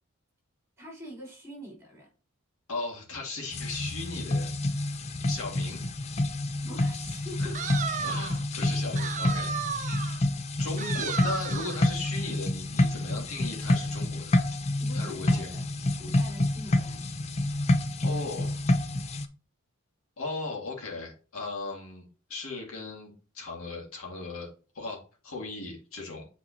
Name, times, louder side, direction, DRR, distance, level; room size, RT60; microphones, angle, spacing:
voice 1, 0.8-2.1 6.6-7.7 14.8-15.6 16.0-17.0, equal, 15° right, -2 dB, 3.7 m, -44 dB
voice 2, 2.7-5.8 7.4-7.6 8.0-9.8 10.6-14.5 14.9-15.5 18.0-18.7 20.2-22.0 22.3-24.5 24.7-26.3, left 3 dB, 80° left, -2 dB, 2.2 m, -37 dB
sound 1, 3.5-19.3, left 1 dB, 30° left, 0.5 m, -28 dB
sound 2, 7.5-8.4 9.0-10.2 10.8-11.9, right 7 dB, 35° right, 0.6 m, -34 dB
8.4 x 4.1 x 2.9 m, 0.35 s
head